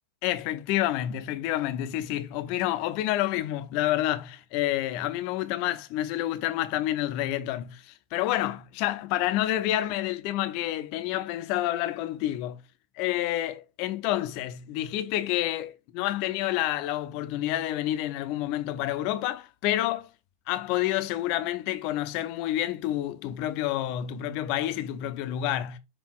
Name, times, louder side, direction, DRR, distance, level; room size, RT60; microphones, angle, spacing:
voice 1, 0.2-12.6 13.0-20.1 20.5-25.8, left 14 dB, 45° left, 0.4 m, -29 dB
5.3 x 2.2 x 3.6 m
figure-of-eight pair, 90°, 0 cm